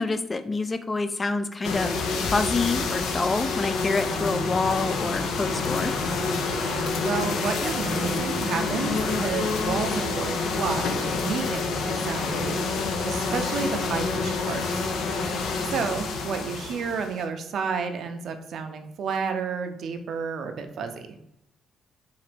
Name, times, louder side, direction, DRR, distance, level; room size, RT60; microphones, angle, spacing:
voice 1, 0.0-2.0 2.3-5.9, left 3 dB, 25° left, 10 dB, 0.3 m, -27 dB
sound 1, 1.6-17.2, left 4 dB, 80° left, 0.5 m, -28 dB
voice 2, 4.1-4.5 6.4-12.6 13.0-14.6 15.6-21.2, right 5 dB, 65° right, 7 dB, 0.4 m, -31 dB
3.9 x 2.5 x 3.3 m, 0.79 s
cardioid pair, 90°, 0 cm